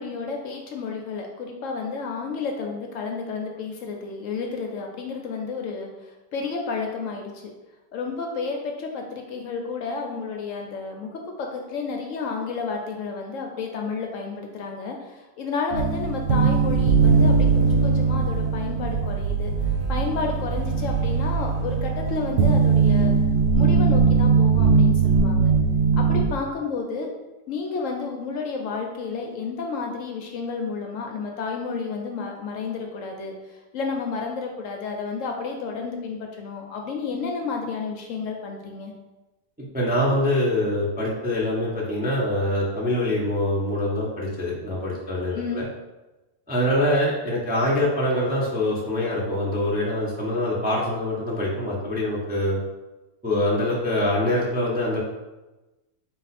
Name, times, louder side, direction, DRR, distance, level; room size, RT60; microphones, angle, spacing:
voice 1, 0.0-7.5 7.9-19.5 19.9-23.1 23.5-25.5 26.0-27.1 27.5-38.9 45.3-45.7, left 4 dB, 70° left, 2 dB, 0.8 m, -31 dB
sound 1, 15.7-26.2, right 5 dB, 75° right, 1.1 m, -20 dB
voice 2, 39.7-45.6 46.5-52.6 53.2-55.0, left 1 dB, 15° right, -5 dB, 0.3 m, -24 dB
4.2 x 2.4 x 4.1 m, 1.1 s
omnidirectional pair, 1.6 m